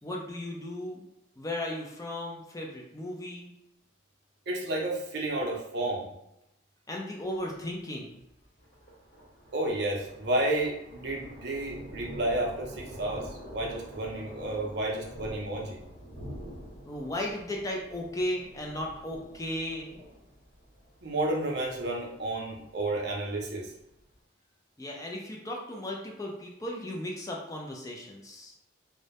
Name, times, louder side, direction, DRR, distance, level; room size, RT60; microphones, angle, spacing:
voice 1, 0.0-1.0 1.4-3.5 6.9-8.2 16.9-20.0 24.8-28.5, left 1 dB, 15° left, -1 dB, 0.3 m, -36 dB
voice 2, 4.5-6.1 9.5-15.8 21.0-23.7, right 1 dB, 55° right, -1 dB, 0.5 m, -31 dB
Thunder, 7.3-24.1, equal, 45° left, 0.8 m, -47 dB
2.2 x 2.0 x 2.7 m, 0.83 s
head